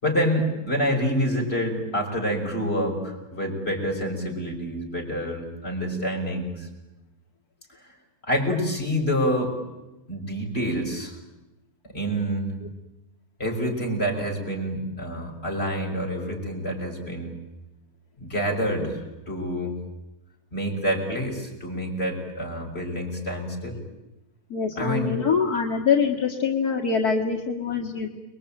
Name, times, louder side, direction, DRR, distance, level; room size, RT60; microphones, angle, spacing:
voice 1, 0.0-6.7 8.2-9.6 10.1-11.1 11.9-12.5 13.4-17.3 18.2-19.8 20.5-23.8 24.8-25.2, equal, 40° left, 0 dB, 6.4 m, -27 dB
voice 2, 24.5-28.1, left 6 dB, 85° left, 1 dB, 2.5 m, -24 dB
29.5 x 22.0 x 9.0 m, 1.0 s
omnidirectional pair, 1.6 m